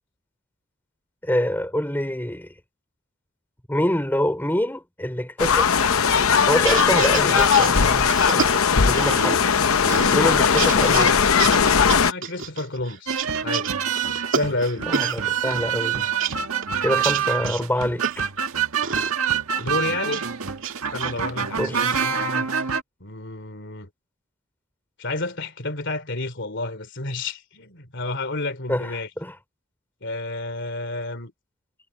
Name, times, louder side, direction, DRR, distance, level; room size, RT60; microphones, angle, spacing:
voice 1, 1.2-2.5 3.7-5.7 6.5-9.4 10.1-11.3 14.9-16.0 16.8-18.3 21.6-22.1 28.7-29.3, left 1 dB, 10° left, 3.3 m, -26 dB
sound 1, 5.4-12.1, left 6 dB, 75° left, 0.8 m, -18 dB
sound 2, 6.5-9.6 9.8-11.1 11.4-15.2 15.5-18.5 18.8-19.1 19.6-20.3 20.6-21.4, right 6 dB, 60° right, 2.7 m, -30 dB
voice 2, 12.0-13.7 14.3-15.0 19.6-20.3 20.9-22.5 23.0-23.9 25.0-29.1 30.0-31.3, left 2 dB, 55° left, 3.1 m, -30 dB
sound 3, 13.1-22.8, right 7 dB, 80° right, 1.6 m, -26 dB
head